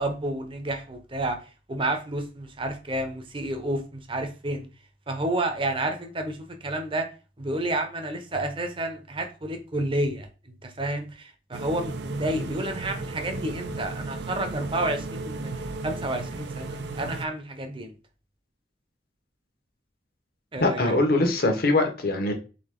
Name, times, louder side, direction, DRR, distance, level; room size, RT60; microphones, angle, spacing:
voice 1, 0.0-1.4 1.7-4.7 5.1-7.1 7.4-15.5 15.8-17.9 20.5-20.9, right 1 dB, 30° right, 0.8 m, -30 dB
sound 1, 11.5-17.2, right 2 dB, 75° right, 0.5 m, -35 dB
voice 2, 20.6-22.3, left 2 dB, 60° left, 1.1 m, -22 dB
3.9 x 3.5 x 3.7 m
head